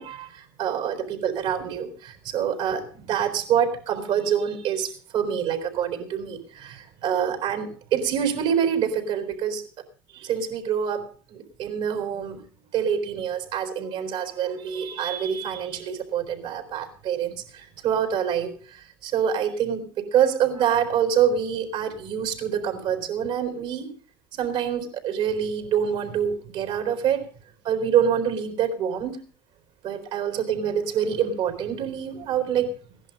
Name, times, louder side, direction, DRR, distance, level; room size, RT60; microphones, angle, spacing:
voice 1, 0.0-9.6 10.1-12.4 12.7-23.9 24.4-27.3 27.6-29.2 29.8-32.7, right 8 dB, 65° right, 6 dB, 4.0 m, -26 dB
16.5 x 11.0 x 5.3 m, 0.42 s
hypercardioid pair, 75°, 12 cm